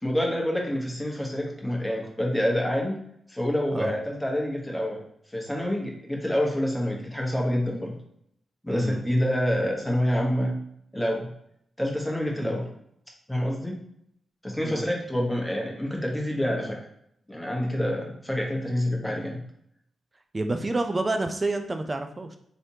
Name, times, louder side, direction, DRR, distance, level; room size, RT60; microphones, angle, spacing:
voice 1, 0.0-3.0 3.3-5.0 5.3-8.0 8.6-10.6 10.9-11.3 11.8-12.7 13.3-13.8 14.4-16.8 17.3-19.4, equal, 10° left, -1 dB, 1.2 m, -27 dB
voice 2, 8.7-9.0 12.4-12.6 14.6-14.9 20.3-22.4, right 2 dB, 35° right, 6 dB, 0.5 m, -29 dB
3.3 x 3.0 x 2.8 m, 0.72 s
supercardioid pair, 40°, 0 cm